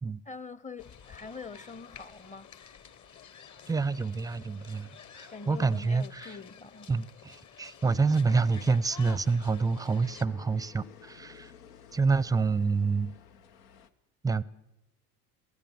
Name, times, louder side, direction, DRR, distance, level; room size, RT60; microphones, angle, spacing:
voice 1, 0.3-2.5 3.3-3.4 5.3-6.9, left 4 dB, 15° left, 0.8 m, -44 dB
newjersey OC musicpier front, 0.8-10.3, left 7 dB, 40° left, 1.3 m, -51 dB
voice 2, 3.7-6.4 6.9-11.5 11.9-13.1 14.2-14.4, right 4 dB, 10° right, 0.6 m, -27 dB
sound 1, 8.2-13.9, left 8 dB, 80° left, 1.2 m, -54 dB
22.5 x 15.5 x 7.4 m
hypercardioid pair, 80°, 46 cm